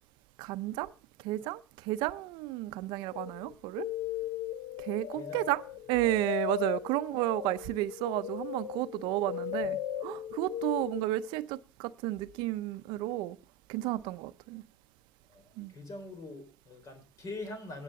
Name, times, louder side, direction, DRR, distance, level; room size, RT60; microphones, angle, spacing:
voice 1, 0.4-0.9 1.2-3.9 4.8-13.4 13.7-14.6 15.6-15.7, right 16 dB, 85° right, 0.5 m, -32 dB
sound 1, 3.1-11.4, left 12 dB, 80° left, 0.5 m, -37 dB
voice 2, 9.2-9.8 15.3-17.8, left 2 dB, 45° left, 3.3 m, -44 dB
10.0 x 7.9 x 6.4 m
supercardioid pair, 90°, 8 cm